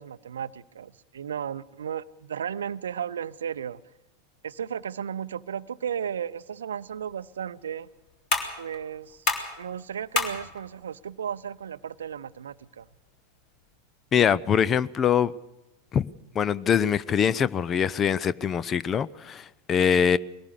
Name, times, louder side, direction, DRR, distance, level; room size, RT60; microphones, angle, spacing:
voice 1, 0.0-3.8 4.4-7.9 8.6-9.3 9.6-12.9, right 8 dB, 70° right, 0.6 m, -34 dB
sound 1, 6.8-13.8, left 4 dB, 45° left, 3.5 m, -35 dB
voice 2, 14.1-15.3 15.9-16.0 16.3-20.2, left 8 dB, 25° left, 0.6 m, -23 dB
21.5 x 18.5 x 6.7 m
figure-of-eight pair, 85°, 0 cm